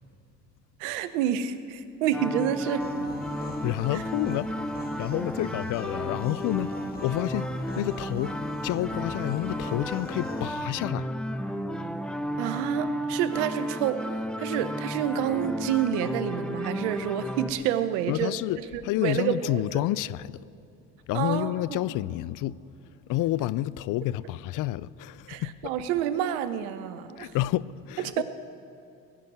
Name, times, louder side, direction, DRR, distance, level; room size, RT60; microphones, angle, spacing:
voice 1, 0.8-2.9 3.9-4.0 12.4-18.4 18.7-19.8 21.1-21.8 25.3-27.3 28.0-28.2, right 10 dB, 90° right, 0.8 m, -29 dB
sound 1, 2.1-17.5, equal, ahead, 0.8 m, -33 dB
sound 2, 2.8-10.6, left 2 dB, 25° left, 2.1 m, -41 dB
voice 2, 3.4-6.7 7.0-11.1 18.1-20.4 21.1-22.6 23.1-25.5 27.2-28.2, left 15 dB, 65° left, 0.5 m, -29 dB
18.5 x 6.2 x 9.4 m
supercardioid pair, 75°, 34 cm